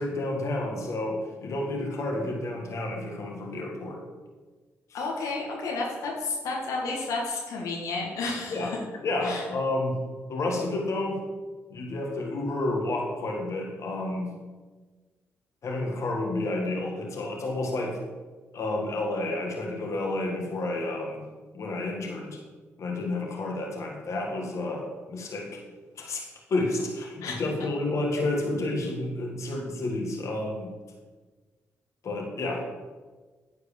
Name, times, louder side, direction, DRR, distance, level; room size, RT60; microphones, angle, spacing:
voice 1, 0.0-4.0 8.5-8.7 9.0-10.0 10.3-11.2 11.7-14.3 15.6-18.0 18.5-21.2 21.5-22.4 22.8-25.6 26.0-30.7 32.0-32.7, left 2 dB, 60° left, 1 dB, 1.8 m, -30 dB
voice 2, 4.9-8.8 9.2-9.4 27.2-27.4, left 3 dB, 80° left, -2 dB, 1.8 m, -31 dB
9.8 x 4.7 x 7.2 m, 1.3 s
supercardioid pair, 60°, 6 cm